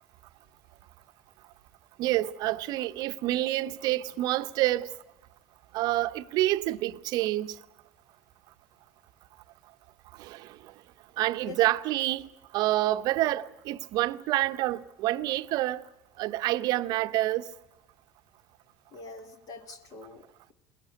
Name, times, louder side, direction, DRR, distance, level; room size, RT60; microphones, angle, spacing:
voice 1, 2.0-4.9 5.7-7.6 10.2-10.6 11.2-15.8 16.2-17.5, right 16 dB, 55° right, 0.7 m, -28 dB
voice 2, 18.9-20.5, left 4 dB, 50° left, 1.5 m, -45 dB
21.0 x 18.0 x 9.6 m
hypercardioid pair, 75°, 8 cm